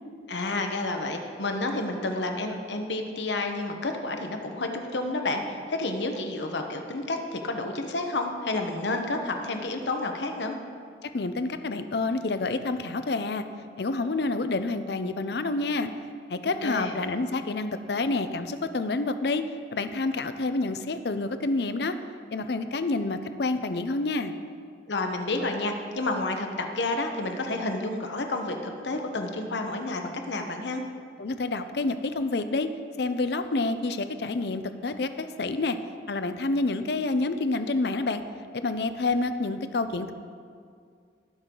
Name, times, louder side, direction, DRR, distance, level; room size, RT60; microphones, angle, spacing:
voice 1, 0.3-10.5 16.4-17.0 24.9-30.8, left 2 dB, 85° left, 4 dB, 1.1 m, -30 dB
voice 2, 11.0-13.4 13.8-15.9 16.3-19.4 19.7-22.0 22.3-24.3 31.2-32.7 33.0-35.8 36.1-38.2 38.5-40.1, left 3 dB, 65° left, 10 dB, 0.6 m, -28 dB
19.0 x 6.4 x 3.9 m, 2.2 s
head